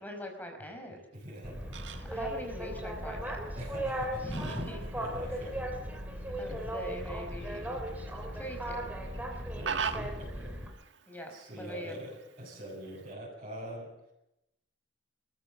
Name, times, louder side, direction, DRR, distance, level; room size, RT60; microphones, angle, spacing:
voice 1, 0.0-1.0 2.0-3.4 4.2-4.8 6.4-7.8 8.3-8.8 11.1-12.0, equal, 10° left, 4 dB, 5.0 m, -41 dB
voice 2, 1.1-1.6 3.5-4.4 4.9-5.7 6.5-6.6 9.6-10.5 11.3-14.1, equal, 35° right, -8 dB, 7.3 m, -43 dB
Fowl, 1.1-13.1, right 6 dB, 85° right, 1.6 m, -44 dB
Boat Water vehicle, 1.4-10.7, equal, 10° right, 3.5 m, -37 dB
27.5 x 14.5 x 7.6 m, 0.87 s
head